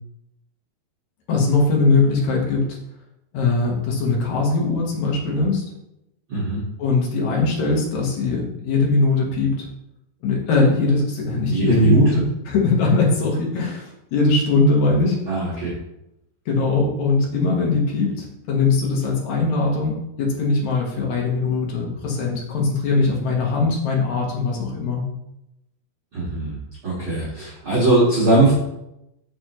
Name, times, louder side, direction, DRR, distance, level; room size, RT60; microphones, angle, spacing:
voice 1, 1.3-2.8 3.3-5.6 6.8-9.7 10.2-15.2 16.5-25.0, left 3 dB, 60° left, -1 dB, 2.3 m, -21 dB
voice 2, 6.3-6.6 11.5-12.0 15.3-15.7 26.1-26.6 26.8-28.5, right 2 dB, 45° right, -8 dB, 1.9 m, -19 dB
6.7 x 6.2 x 3.1 m, 0.84 s
omnidirectional pair, 4.4 m